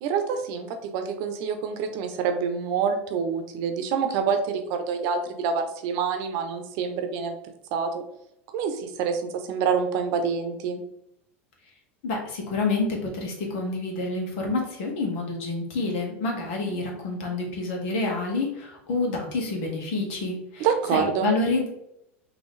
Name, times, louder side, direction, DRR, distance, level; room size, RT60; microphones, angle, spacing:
voice 1, 0.0-7.3 7.7-8.0 8.5-10.8 20.6-21.3, right 6 dB, 60° right, 6 dB, 0.8 m, -27 dB
voice 2, 12.0-21.7, left 3 dB, 65° left, 1 dB, 1.5 m, -28 dB
5.5 x 3.0 x 3.2 m, 0.79 s
hypercardioid pair, 85°, 7 cm